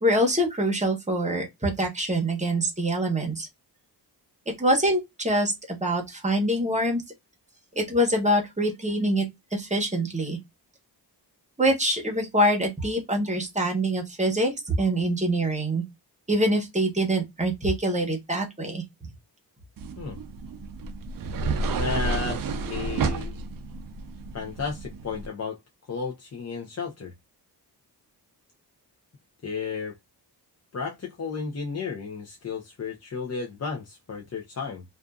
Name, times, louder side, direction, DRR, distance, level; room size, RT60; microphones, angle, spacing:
voice 1, 0.0-3.5 4.6-7.0 7.7-10.4 11.6-15.8 16.3-18.8, right 1 dB, 15° right, 0.9 m, -25 dB
sound 1, 19.8-25.3, right 3 dB, 55° right, 0.5 m, -31 dB
voice 2, 21.7-23.3 24.3-25.6 25.9-27.1 29.4-30.0 30.7-34.8, left 5 dB, 40° left, 0.6 m, -33 dB
2.5 x 2.5 x 2.2 m
wide cardioid pair, 120°, 42 cm